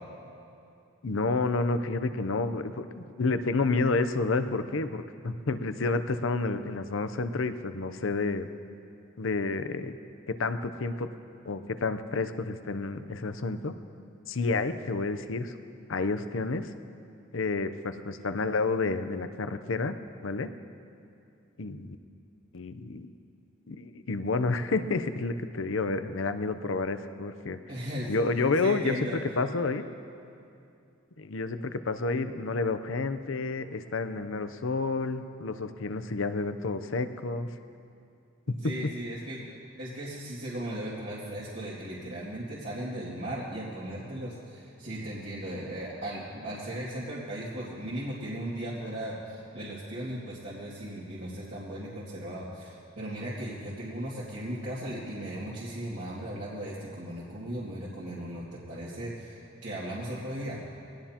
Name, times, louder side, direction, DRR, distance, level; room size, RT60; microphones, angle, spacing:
voice 1, 1.0-8.5 9.2-10.0 10.3-11.1 11.5-13.7 14.3-15.6 15.9-16.7 17.3-19.9 20.2-20.5 21.6-22.0 22.5-23.1 23.7-27.6 28.1-29.1 29.4-29.8 31.2-37.5 38.5-38.9, left 3 dB, 75° left, 10 dB, 0.7 m, -30 dB
voice 2, 27.7-28.2 28.6-29.2 38.5-39.5 39.8-60.6, right 1 dB, 65° right, -8 dB, 2.3 m, -37 dB
22.5 x 18.0 x 2.9 m, 2.6 s
head